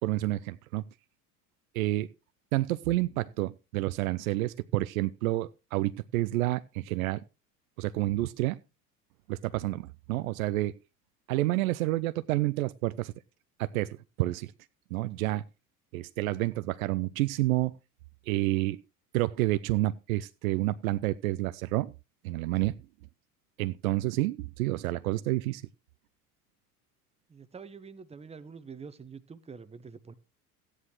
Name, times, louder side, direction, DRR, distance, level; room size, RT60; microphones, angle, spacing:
voice 1, 0.0-0.8 1.7-2.1 2.5-7.2 7.8-8.6 9.3-10.7 11.3-13.1 13.6-14.5 14.9-15.4 15.9-17.7 18.3-18.8 19.1-21.9 22.2-22.8 23.6-25.6, right 17 dB, 70° right, 0.5 m, -29 dB
voice 2, 27.3-30.1, right 5 dB, 15° right, 0.9 m, -46 dB
14.0 x 9.9 x 3.1 m
figure-of-eight pair, 70°, 44 cm